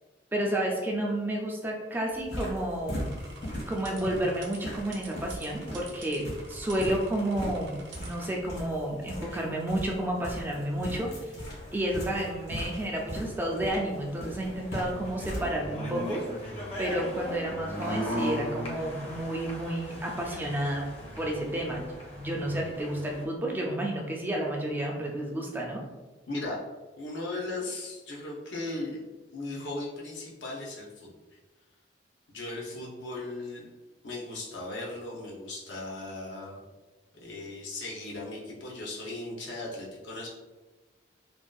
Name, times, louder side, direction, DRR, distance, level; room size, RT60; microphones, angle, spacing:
voice 1, 0.3-3.1 3.7-11.3 11.7-16.2 16.8-25.8, right 1 dB, 10° right, -1 dB, 0.3 m, -31 dB
sound 1, 2.1-15.5, equal, 70° left, 1.3 m, -39 dB
sound 2, 2.9-8.3, right 4 dB, 70° right, 0.5 m, -48 dB
sound 3, 11.5-23.2, equal, 35° left, 0.6 m, -39 dB
voice 2, 26.3-26.6 27.0-31.1 32.3-33.7 34.0-36.6 37.2-40.3, left 2 dB, 85° left, -3 dB, 0.6 m, -37 dB
2.6 x 2.2 x 2.3 m, 1.2 s
head